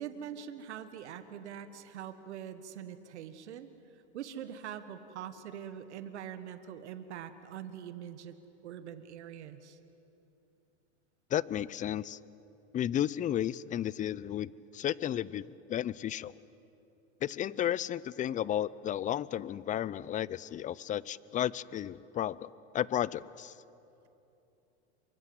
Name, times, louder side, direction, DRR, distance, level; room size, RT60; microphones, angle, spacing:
voice 1, 0.0-3.7 4.1-8.3 8.6-9.8, right 9 dB, 80° right, 10 dB, 1.6 m, -43 dB
voice 2, 11.3-12.2 12.7-16.3 17.2-22.5 22.7-23.5, left 11 dB, 25° left, 21 dB, 0.5 m, -33 dB
28.0 x 24.5 x 7.8 m, 2.9 s
hypercardioid pair, 110°, 34 cm